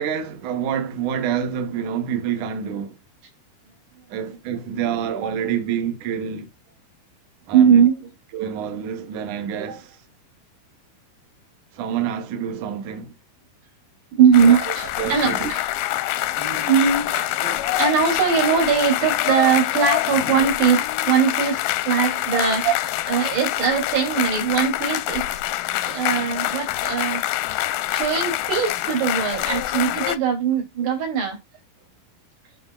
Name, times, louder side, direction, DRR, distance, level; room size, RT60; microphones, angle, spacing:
voice 1, 0.0-3.0 4.1-6.5 7.5-7.9 8.3-10.0 11.7-13.1 14.4-15.5 22.3-22.4 22.6-22.7, right 8 dB, 65° right, 2.2 m, -27 dB
voice 2, 7.5-8.1 14.1-15.6 16.3-22.6 23.1-25.3 25.9-27.2 27.9-31.4, right 7 dB, 90° right, 5.1 m, -20 dB
sound 1, 14.3-30.2, left 15 dB, 80° left, 1.9 m, -25 dB
11.5 x 4.4 x 2.4 m
omnidirectional pair, 4.5 m